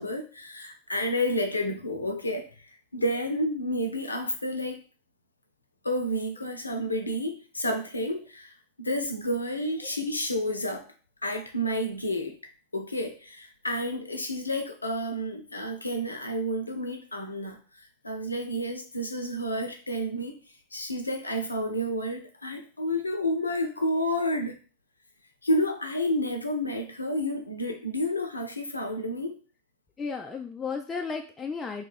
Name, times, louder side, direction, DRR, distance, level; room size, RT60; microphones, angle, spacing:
voice 1, 0.0-4.8 5.8-10.8 11.2-12.4 12.7-20.4 20.7-24.6 25.4-29.4, equal, 80° left, 5 dB, 0.5 m, -30 dB
voice 2, 30.0-31.8, left 5 dB, 15° left, 3 dB, 0.3 m, -34 dB
2.8 x 2.3 x 3.9 m, 0.38 s
figure-of-eight pair, 90°, 0 cm